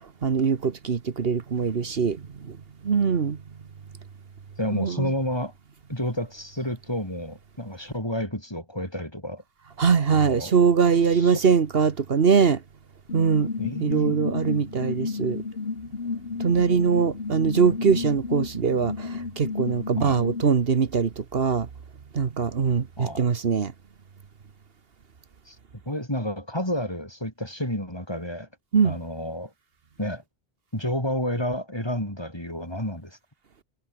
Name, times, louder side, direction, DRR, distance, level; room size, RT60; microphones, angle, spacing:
voice 1, 0.2-2.2 2.5-2.6 2.8-3.4 4.7-5.1 9.8-12.6 13.1-13.5 13.8-15.4 16.4-21.7 22.1-23.7 28.7-29.0, right 6 dB, 70° right, 1.4 m, -22 dB
voice 2, 4.6-5.5 5.9-9.4 10.1-10.5 11.1-11.4 13.6-14.2 20.0-20.2 23.0-23.3 25.5-25.6 25.9-28.5 28.8-29.5 30.0-30.2 30.7-33.2, equal, 25° left, 7.3 m, -30 dB
sound 1, 13.1-20.4, left 4 dB, 75° left, 2.2 m, -32 dB
omnidirectional pair, 1.0 m